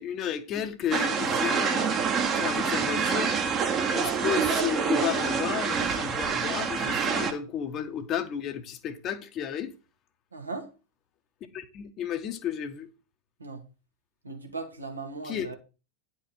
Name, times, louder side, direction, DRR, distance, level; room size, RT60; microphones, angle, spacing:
voice 1, 0.0-3.3 3.9-9.7 11.5-12.9 15.2-15.5, left 9 dB, 35° left, 1.2 m, -33 dB
sound 1, 0.9-7.3, right 6 dB, 25° right, 1.2 m, -26 dB
voice 2, 10.3-10.7 13.4-13.6 14.2-15.6, right 3 dB, 80° right, 1.9 m, -37 dB
10.0 x 4.7 x 5.9 m
figure-of-eight pair, 90°, 0 cm